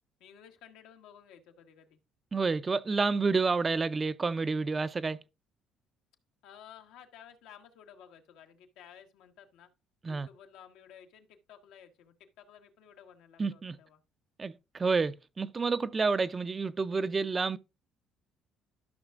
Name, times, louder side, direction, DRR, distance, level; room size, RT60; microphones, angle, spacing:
voice 1, 0.2-2.0 6.4-9.7 10.1-14.0, left 8 dB, 85° left, 1.3 m, -54 dB
voice 2, 2.3-5.2 10.0-10.3 13.4-13.8 14.4-17.6, right 4 dB, 25° right, 0.4 m, -29 dB
13.0 x 5.8 x 2.4 m
cardioid pair, 110°, 0 cm